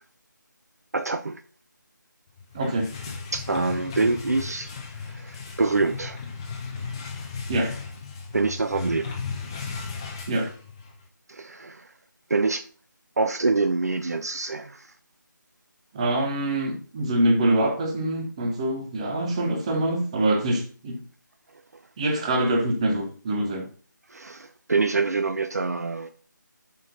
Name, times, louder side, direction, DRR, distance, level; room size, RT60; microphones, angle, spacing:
voice 1, 0.9-1.4 3.3-4.7 5.1-6.2 8.3-9.2 11.3-11.8 12.3-12.6 13.2-14.9 24.1-26.1, right 3 dB, 55° right, 0.6 m, -25 dB
sound 1, 2.4-11.0, left 5 dB, 15° left, 0.8 m, -36 dB
voice 2, 2.5-2.9 7.5-7.8 10.3-10.5 15.9-21.0 22.0-23.7, right 1 dB, 20° right, 1.0 m, -25 dB
7.5 x 5.2 x 4.0 m
figure-of-eight pair, 160°, 11 cm